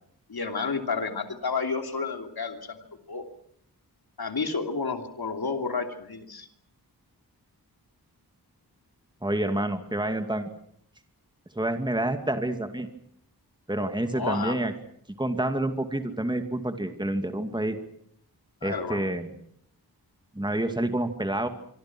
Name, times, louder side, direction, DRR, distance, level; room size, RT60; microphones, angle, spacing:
voice 1, 0.3-3.2 4.2-6.5 14.1-14.6 18.6-19.0, left 4 dB, 70° left, 5 dB, 2.9 m, -31 dB
voice 2, 9.2-10.5 11.5-12.9 13.7-14.7 15.2-17.8 18.6-19.3 20.3-21.5, right 1 dB, 10° right, 6 dB, 2.4 m, -28 dB
25.5 x 24.5 x 6.1 m, 0.68 s
wide cardioid pair, 55°, 39 cm